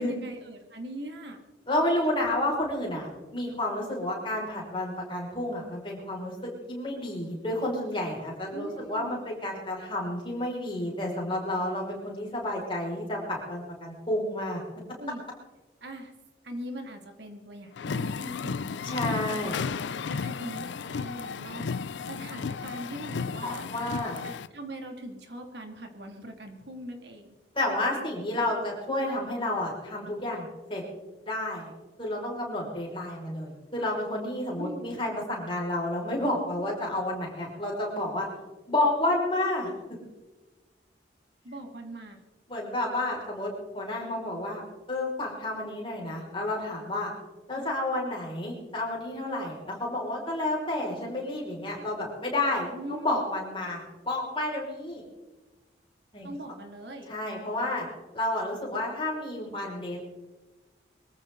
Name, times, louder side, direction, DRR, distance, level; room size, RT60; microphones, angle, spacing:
voice 1, 0.0-1.4 8.5-9.3 15.0-15.2 15.8-16.1 16.4-19.7 20.1-23.6 24.2-27.3 34.6-34.9 41.4-42.2 47.5-47.7 52.7-53.3 56.2-57.1, right 1 dB, 70° right, 4 dB, 2.5 m, -41 dB
voice 2, 1.7-14.6 18.8-19.6 23.4-24.2 27.5-30.8 31.2-31.7 32.0-38.3 38.7-39.7 42.5-44.6 44.9-47.1 47.5-55.0 56.1-56.3 57.1-57.9 58.1-60.0, left 1 dB, 30° left, -3 dB, 5.7 m, -30 dB
sound 1, 17.8-24.5, left 5 dB, 85° left, 0.5 m, -33 dB
24.0 x 14.5 x 3.9 m, 1.2 s
head